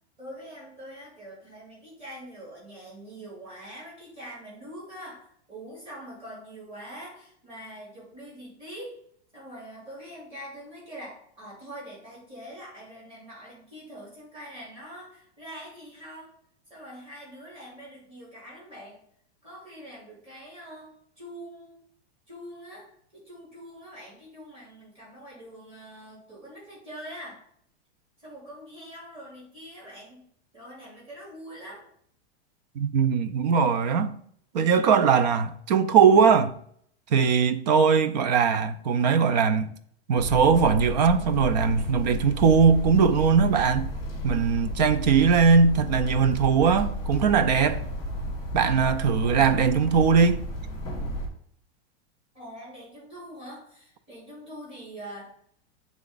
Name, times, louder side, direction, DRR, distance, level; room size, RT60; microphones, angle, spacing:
voice 1, 0.2-9.0 9.3-16.3 16.7-19.0 19.4-21.8 22.3-27.4 28.2-30.2 30.5-31.9 52.3-55.3, equal, 15° right, 2.8 m, -44 dB
voice 2, 32.8-34.1 34.5-36.5 37.1-39.7 40.1-43.9 44.2-47.8 48.5-50.4, right 6 dB, 40° right, 0.4 m, -20 dB
sound 1, 40.2-51.3, equal, 10° left, 1.3 m, -33 dB
7.5 x 3.6 x 3.9 m
supercardioid pair, 175°, 33 cm